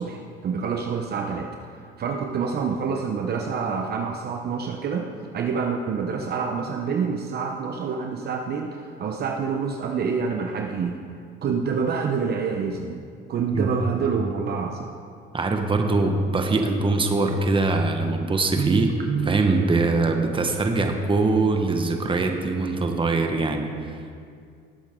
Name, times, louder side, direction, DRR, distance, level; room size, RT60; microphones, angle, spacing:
voice 1, 0.0-1.5 2.0-5.1 5.3-11.0 11.4-13.0 13.3-14.9 18.6-19.4, right 5 dB, 50° right, 3 dB, 0.9 m, -27 dB
voice 2, 15.3-18.9 19.2-24.0, right 3 dB, 25° right, 4 dB, 1.3 m, -22 dB
18.0 x 8.1 x 3.8 m, 2.2 s
cardioid pair, 95°, 21 cm